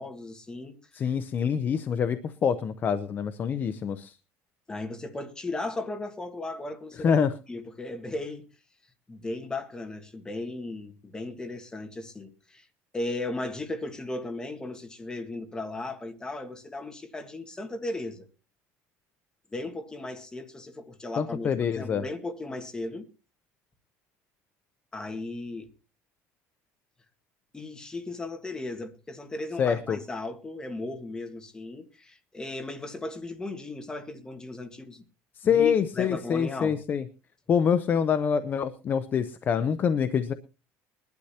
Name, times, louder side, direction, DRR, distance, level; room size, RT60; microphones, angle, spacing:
voice 1, 0.0-1.1 4.7-7.2 7.5-8.5 9.1-12.7 12.9-18.3 19.5-23.1 24.9-25.7 27.5-35.0 35.4-36.8, left 2 dB, 10° left, 1.5 m, -36 dB
voice 2, 1.0-4.2 7.0-7.3 21.2-22.0 29.6-30.0 35.4-37.0 37.5-40.3, left 7 dB, 30° left, 0.6 m, -25 dB
21.0 x 12.0 x 2.8 m
cardioid pair, 155°, 6 cm